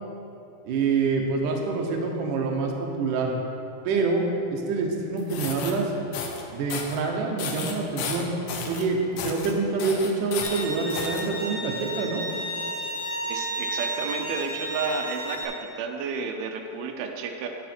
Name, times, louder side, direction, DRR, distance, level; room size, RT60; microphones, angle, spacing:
voice 1, 0.7-3.3 3.9-4.2 4.5-5.9 6.5-8.3 8.7-12.2, right 4 dB, 70° right, 0 dB, 2.3 m, -26 dB
sound 1, 5.2-5.7 6.1-6.4 6.7-7.0 7.4-8.8 9.2-9.5 9.8-11.2, left 6 dB, 90° left, 1.5 m, -33 dB
Bowed string instrument, 10.4-15.4, right 1 dB, 50° left, 1.5 m, -32 dB
voice 2, 13.3-17.5, right 5 dB, 90° right, 4 dB, 2.6 m, -31 dB
9.0 x 8.6 x 4.4 m, 2.7 s
omnidirectional pair, 4.2 m